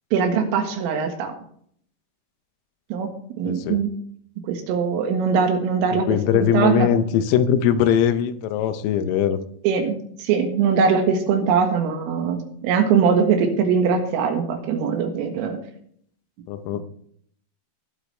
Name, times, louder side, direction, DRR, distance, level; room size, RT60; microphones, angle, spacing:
voice 1, 0.1-1.4 2.9-3.1 3.4-3.9 4.5-6.1 6.3-6.9 9.6-15.6 16.7-16.8, right 6 dB, 80° right, 4 dB, 4.2 m, -21 dB
voice 2, 3.5-3.8 5.9-9.4 16.5-16.8, left 9 dB, 85° left, 11 dB, 3.5 m, -21 dB
21.0 x 8.0 x 3.3 m, 0.64 s
omnidirectional pair, 5.9 m